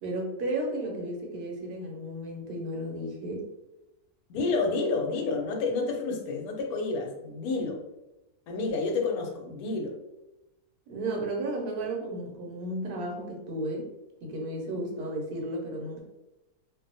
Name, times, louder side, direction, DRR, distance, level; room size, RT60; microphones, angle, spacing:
voice 1, 0.0-3.4 4.5-4.6 10.9-13.9 14.2-16.0, right 1 dB, 85° right, 0 dB, 1.2 m, -33 dB
voice 2, 4.3-7.8 8.5-9.9, left 3 dB, 75° left, 2 dB, 1.0 m, -29 dB
2.7 x 2.1 x 2.6 m, 0.97 s
omnidirectional pair, 1.6 m